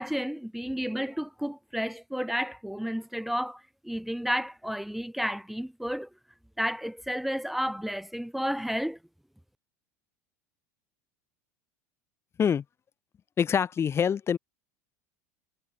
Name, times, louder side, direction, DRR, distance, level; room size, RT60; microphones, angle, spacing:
voice 1, 0.0-6.1 6.6-9.0, equal, ahead, 1.2 m, -32 dB
voice 2, 13.4-14.4, left 7 dB, 30° left, 1.4 m, -25 dB
hypercardioid pair, 90°, 9 cm